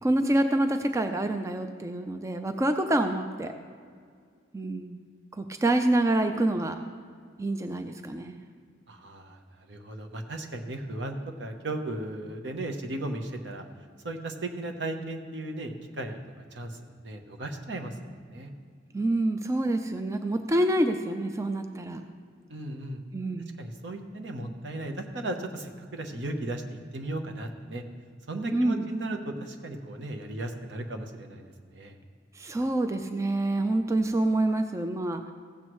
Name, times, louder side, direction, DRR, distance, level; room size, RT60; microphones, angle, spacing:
voice 1, 0.0-3.5 4.5-5.0 5.3-6.8 7.4-8.4 18.9-22.0 23.1-23.6 28.5-28.9 32.4-35.3, right 1 dB, 15° right, 7 dB, 0.4 m, -27 dB
voice 2, 8.9-9.4 9.7-13.6 14.0-16.2 16.5-16.7 17.0-18.5 22.5-23.0 23.6-27.8 28.3-31.9, right 2 dB, 70° right, 4 dB, 1.0 m, -36 dB
15.5 x 7.8 x 3.1 m, 2.1 s
head